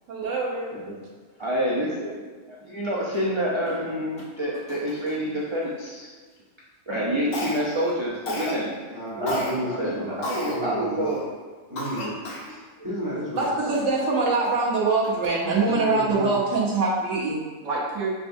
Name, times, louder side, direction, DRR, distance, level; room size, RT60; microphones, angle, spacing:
voice 1, 0.1-0.8 13.3-18.1, right 3 dB, 90° right, -5 dB, 1.2 m, -24 dB
voice 2, 1.4-6.1 6.9-8.8 9.2-11.2, equal, 50° right, -6 dB, 0.3 m, -28 dB
sound 1, 3.1-3.3 3.7-6.3 7.2-7.3 8.3-8.4 8.7-8.8 10.0-10.6 13.4-15.8 17.0-17.1, left 2 dB, 5° left, 1.2 m, -49 dB
Cough, 7.3-7.8 8.3-8.6 9.3-9.5 10.2-10.6 11.1-11.2 11.8-12.5, left 2 dB, 65° left, 1.0 m, -32 dB
voice 3, 8.9-11.2 11.7-12.1 12.8-13.5 15.7-16.4, equal, 15° right, -8 dB, 1.2 m, -31 dB
6.3 x 2.3 x 2.6 m, 1.4 s
omnidirectional pair, 1.3 m